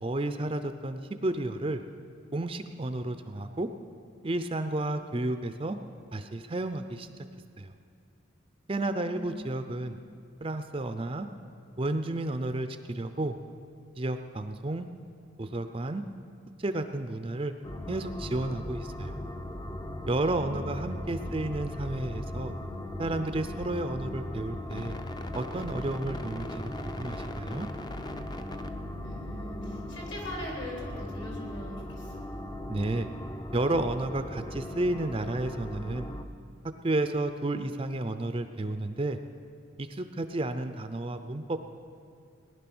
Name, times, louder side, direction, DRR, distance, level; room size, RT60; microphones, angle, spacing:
voice 1, 0.0-1.8 2.3-3.7 4.2-5.8 6.1-7.1 7.6-7.7 8.7-9.9 10.4-11.3 11.8-13.4 14.0-14.9 15.4-16.0 16.6-17.5 17.9-19.2 20.1-22.5 23.0-25.0 25.3-27.7 32.7-33.1 33.5-36.1 36.8-39.2 39.8-41.6, right 2 dB, 25° right, 9 dB, 0.5 m, -31 dB
voice 2, 8.9-9.2 9.8-9.9 20.3-20.8 21.2-21.5 29.0-32.2, left 1 dB, 60° left, -2 dB, 3.8 m, -42 dB
sound 1, 17.6-36.3, left 1 dB, 20° left, 0.6 m, -38 dB
19.0 x 11.0 x 6.1 m, 2.4 s
head